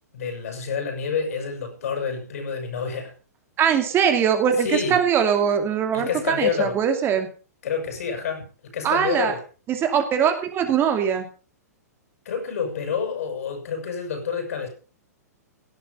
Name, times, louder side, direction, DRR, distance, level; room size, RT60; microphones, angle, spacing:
voice 1, 0.1-3.1 4.6-5.0 5.9-6.8 7.6-9.4 12.3-14.7, left 6 dB, 60° left, 7.0 m, -28 dB
voice 2, 3.6-7.3 8.8-9.3 9.7-11.3, right 8 dB, 25° right, 2.5 m, -21 dB
17.0 x 11.0 x 5.3 m
figure-of-eight pair, 110°, 9 cm